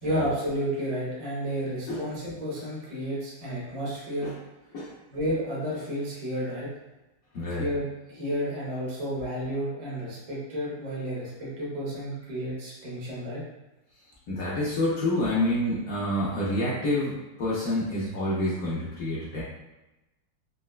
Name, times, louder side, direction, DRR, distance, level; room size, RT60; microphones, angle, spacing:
voice 1, 0.0-4.3 5.1-6.7 7.5-13.4, equal, 80° right, -6 dB, 0.3 m, -31 dB
voice 2, 7.3-7.6 14.3-19.4, left 1 dB, 85° left, -8 dB, 0.7 m, -28 dB
4.0 x 2.1 x 2.3 m, 1.0 s
omnidirectional pair, 2.3 m